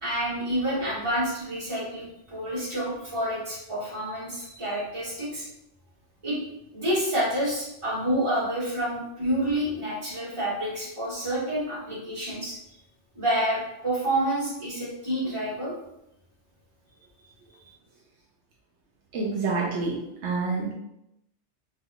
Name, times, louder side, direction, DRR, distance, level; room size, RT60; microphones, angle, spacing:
voice 1, 0.0-5.4 6.2-6.4 6.7-12.5 13.1-15.7, right 1 dB, 25° right, -9 dB, 1.5 m, -28 dB
voice 2, 19.1-20.7, right 4 dB, 80° right, -2 dB, 0.9 m, -28 dB
3.5 x 2.8 x 2.3 m, 0.84 s
omnidirectional pair, 1.2 m